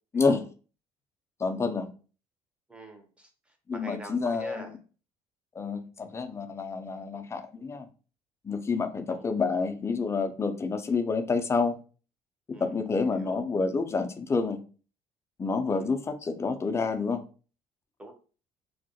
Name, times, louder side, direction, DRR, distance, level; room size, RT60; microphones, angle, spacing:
voice 1, 1.4-1.9 3.7-4.6 5.6-7.9 8.4-11.8 12.5-14.6 15.4-17.2, left 4 dB, 25° left, 6 dB, 0.4 m, -28 dB
voice 2, 2.7-4.8 7.1-7.2 9.1-9.3 12.5-12.8 13.1-13.5 15.7-15.9 18.0-18.1, right 1 dB, 10° right, 4 dB, 0.7 m, -45 dB
2.2 x 2.0 x 2.7 m, 0.37 s
supercardioid pair, 95°, 12 cm